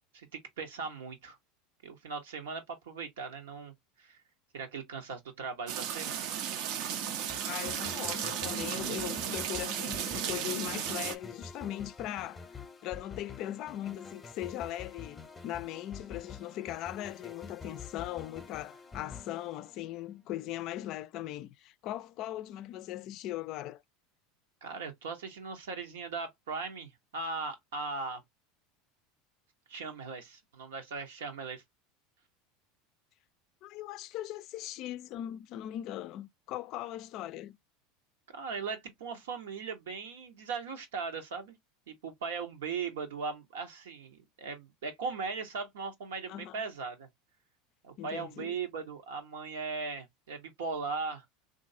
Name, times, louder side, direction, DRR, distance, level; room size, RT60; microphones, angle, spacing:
voice 1, 0.1-1.4 1.8-4.2 4.5-6.3 24.6-28.2 29.7-31.6 38.3-41.5 41.9-47.1 47.8-51.2, right 4 dB, 85° right, 1.0 m, -39 dB
sound 1, 5.7-11.1, right 9 dB, 60° right, 0.5 m, -35 dB
sound 2, 7.3-20.2, left 5 dB, 15° left, 0.7 m, -48 dB
voice 2, 7.5-23.8 33.6-37.6 46.3-46.6 48.0-48.6, left 13 dB, 55° left, 0.3 m, -39 dB
3.1 x 2.5 x 2.6 m
hypercardioid pair, 100°, 0 cm